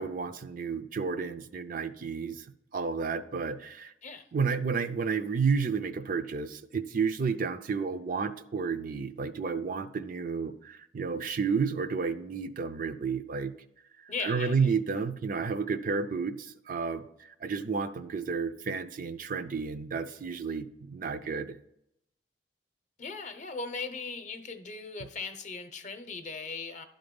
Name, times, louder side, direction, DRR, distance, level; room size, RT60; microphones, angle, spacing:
voice 1, 0.0-2.5 2.7-3.9 4.3-13.5 14.0-21.6, right 5 dB, 50° right, 10 dB, 0.4 m, -31 dB
voice 2, 14.1-14.7 23.0-26.8, left 4 dB, 40° left, 8 dB, 0.7 m, -38 dB
11.5 x 3.9 x 5.2 m, 0.78 s
head